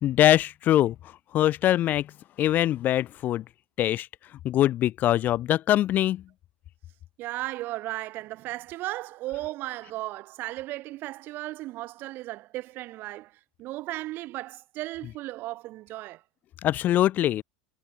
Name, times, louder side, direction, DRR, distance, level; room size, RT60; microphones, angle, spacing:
voice 1, 0.0-0.9 1.3-2.1 2.4-3.4 3.8-4.1 4.4-6.2 16.6-17.4, left 13 dB, 40° left, 0.5 m, -23 dB
voice 2, 7.2-16.2, right 17 dB, 50° right, 1.1 m, -35 dB
hypercardioid pair, 85°, 5 cm